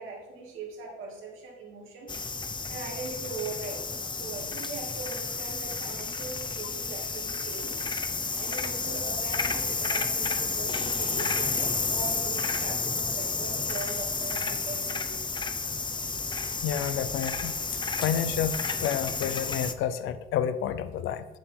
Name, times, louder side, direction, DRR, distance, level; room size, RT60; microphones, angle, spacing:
voice 1, 0.0-2.1 2.7-7.8 8.3-15.2, right 3 dB, 90° right, 0 dB, 2.4 m, -40 dB
sound 1, 2.1-19.7, left 4 dB, 25° left, 0.7 m, -31 dB
voice 2, 16.6-17.6 18.0-21.2, left 9 dB, 90° left, 12 dB, 0.6 m, -30 dB
7.9 x 7.1 x 4.6 m, 1.1 s
cardioid pair, 90°, 20 cm